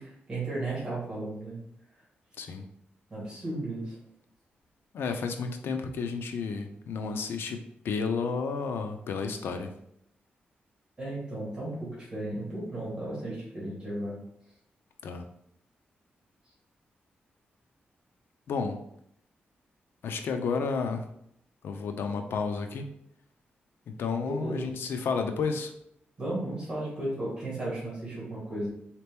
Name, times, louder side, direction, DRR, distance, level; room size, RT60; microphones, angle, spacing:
voice 1, 0.0-1.6 3.1-3.9 11.0-14.2 24.2-24.7 26.2-28.7, right 1 dB, 25° right, -7 dB, 1.6 m, -34 dB
voice 2, 4.9-9.7 15.0-15.2 18.5-18.8 20.0-21.1 21.6-22.9 24.0-25.7, left 5 dB, 85° left, 6 dB, 0.5 m, -31 dB
4.1 x 2.9 x 3.4 m, 0.74 s
wide cardioid pair, 155°, 4 cm